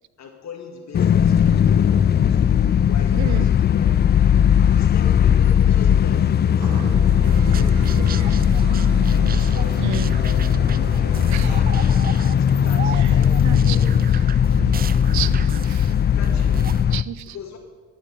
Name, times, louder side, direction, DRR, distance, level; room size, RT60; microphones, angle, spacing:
voice 1, 0.2-1.9 2.3-4.0 4.6-8.7 9.1-14.0 14.5-14.6 15.9-16.7 17.3-17.6, left 5 dB, 65° left, 1 dB, 1.9 m, -40 dB
sound 1, 0.9-17.0, left 8 dB, 35° left, 0.4 m, -18 dB
voice 2, 3.1-3.4 9.8-10.1 11.3-11.5 13.0-13.1 13.4-13.8 15.1-15.9 16.9-17.3, right 13 dB, 70° right, 16 dB, 0.7 m, -30 dB
sound 2, 6.6-11.6, right 5 dB, 85° right, 1.5 m, -34 dB
sound 3, 7.2-16.8, right 7 dB, 30° right, 0.4 m, -35 dB
12.0 x 8.4 x 8.4 m, 1.5 s
cardioid pair, 90°, 30 cm